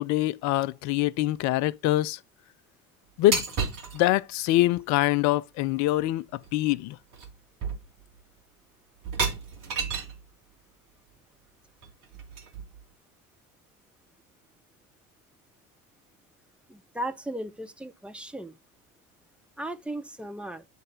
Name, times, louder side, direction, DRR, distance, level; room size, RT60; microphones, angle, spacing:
voice 1, 0.0-2.2 3.2-3.4 3.9-7.0, left 16 dB, 45° left, 0.4 m, -24 dB
sound 1, 3.3-4.0 6.0-6.1 6.4-6.7 7.1-7.3 7.6-8.2 9.0-10.2 11.8-12.8, right 5 dB, 45° right, 2.1 m, -31 dB
voice 2, 16.7-18.6 19.6-20.6, right 1 dB, 5° right, 0.7 m, -36 dB
9.0 x 3.2 x 3.7 m
figure-of-eight pair, 65°, 44 cm